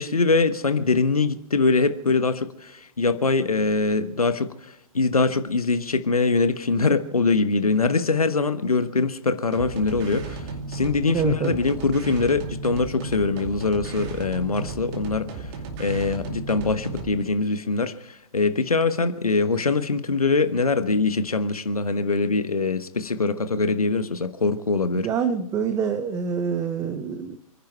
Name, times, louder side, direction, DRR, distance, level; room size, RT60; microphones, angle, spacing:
voice 1, 0.0-2.7 3.0-4.5 4.9-10.4 10.7-15.3 15.8-17.9 18.3-25.1, left 3 dB, 75° left, 11 dB, 1.2 m, -23 dB
sound 1, 9.5-17.2, right 3 dB, 30° right, 2.5 m, -34 dB
voice 2, 11.1-11.6 24.9-27.4, right 6 dB, 15° right, 10 dB, 0.7 m, -26 dB
28.5 x 10.5 x 4.5 m, 0.77 s
figure-of-eight pair, 120°, 19 cm